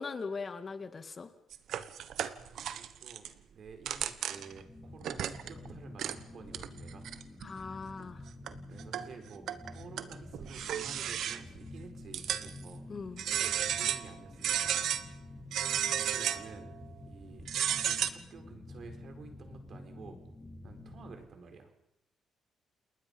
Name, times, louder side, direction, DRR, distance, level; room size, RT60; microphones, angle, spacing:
voice 1, 0.0-1.3 7.4-8.2 12.9-13.2, left 4 dB, 40° left, 10 dB, 2.1 m, -40 dB
sound 1, 1.5-3.3 3.7-4.6 5.0-5.7 6.0-6.2 6.5-7.5 8.0-8.1 8.5-9.1 9.5-11.6 12.1-12.7 13.2-14.1 14.4-15.0 15.5-16.5 17.4-18.1, right 10 dB, 75° right, 1.2 m, -33 dB
voice 2, 2.1-7.1 8.7-12.9 13.4-14.9 15.2-15.4 15.9-16.8 17.1-17.4 17.8-20.2 20.6-21.7, right 5 dB, 55° right, 5 dB, 4.6 m, -51 dB
sound 2, 4.2-21.2, left 2 dB, 10° left, 7.3 m, -49 dB
29.0 x 20.0 x 5.5 m, 0.81 s
cardioid pair, 90°, 0 cm